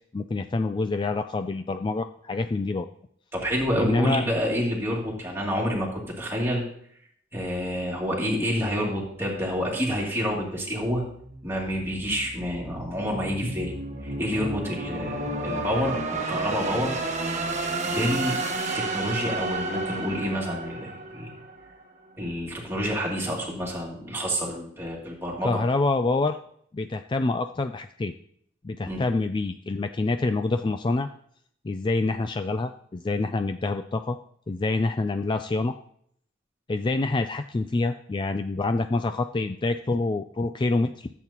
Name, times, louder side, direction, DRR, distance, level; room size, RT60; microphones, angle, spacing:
voice 1, 0.1-2.9 3.8-4.2 25.4-26.4 26.7-28.1 28.6-31.1 31.6-34.2 34.5-35.8 36.7-41.1, left 3 dB, 25° left, 8 dB, 0.3 m, -26 dB
voice 2, 3.3-6.6 7.3-11.0 11.4-13.7 14.0-16.9 17.8-18.4 18.7-21.4 22.2-25.6 28.9-29.0, equal, 15° right, -4 dB, 2.7 m, -28 dB
sound 1, 11.2-21.8, right 2 dB, 40° right, 1.3 m, -32 dB
14.5 x 8.3 x 3.0 m, 0.66 s
head